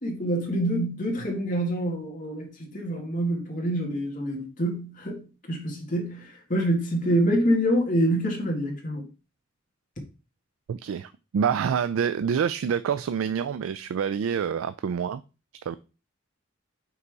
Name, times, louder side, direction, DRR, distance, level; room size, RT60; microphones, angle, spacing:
voice 1, 0.0-9.1, equal, 40° left, 1.7 m, -26 dB
voice 2, 10.7-15.2 15.7-15.8, right 7 dB, 80° right, 0.3 m, -27 dB
5.5 x 4.0 x 4.6 m
head